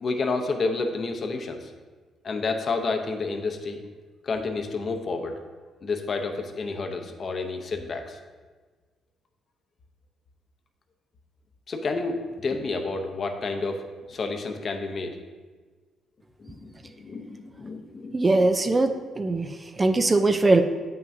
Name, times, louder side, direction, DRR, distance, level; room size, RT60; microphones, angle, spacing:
voice 1, 0.0-1.7 2.2-3.8 4.2-5.4 5.8-8.2 11.7-15.2 16.4-18.3 19.9-20.1, left 3 dB, 45° left, 5 dB, 0.7 m, -30 dB
voice 2, 18.1-20.6, right 2 dB, 25° right, 8 dB, 0.4 m, -21 dB
8.0 x 5.7 x 2.6 m, 1.4 s
cardioid pair, 90°, 0 cm